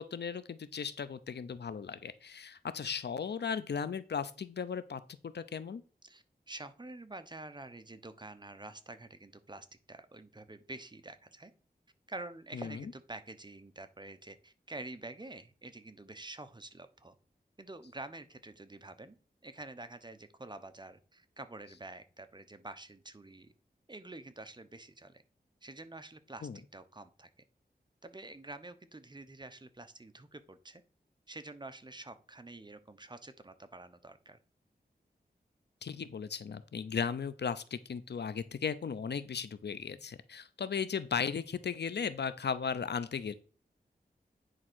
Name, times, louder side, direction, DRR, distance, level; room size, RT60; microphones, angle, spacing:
voice 1, 0.0-5.8 12.5-12.9 26.4-26.6 35.8-43.3, left 6 dB, 80° left, 14 dB, 0.7 m, -36 dB
voice 2, 6.0-11.5 12.1-17.2 17.6-19.2 19.4-23.5 23.9-25.2 25.6-27.3 28.0-30.8 31.3-34.4, right 2 dB, 25° right, 10 dB, 0.9 m, -48 dB
9.5 x 3.7 x 6.2 m, 0.37 s
wide cardioid pair, 75°, 17 cm